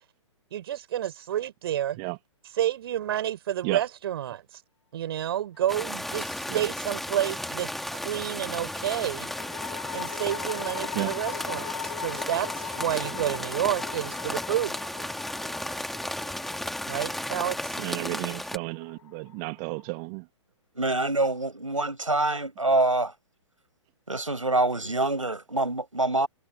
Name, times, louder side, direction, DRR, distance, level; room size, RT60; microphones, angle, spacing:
voice 1, 0.5-2.0 2.6-4.6 4.9-9.3 9.9-14.7 16.9-17.8, right 11 dB, 50° right, 6.6 m, -30 dB
sound 1, 5.6-6.3 8.7-20.0, left 8 dB, 60° left, 4.6 m, -40 dB
sound 2, 5.7-18.6, left 1 dB, ahead, 3.0 m, -34 dB
voice 2, 17.8-20.3, right 35 dB, 30° right, 2.0 m, -33 dB
voice 3, 20.7-23.1 24.1-26.3, right 2 dB, 85° right, 6.6 m, -25 dB
figure-of-eight pair, 120°, 16 cm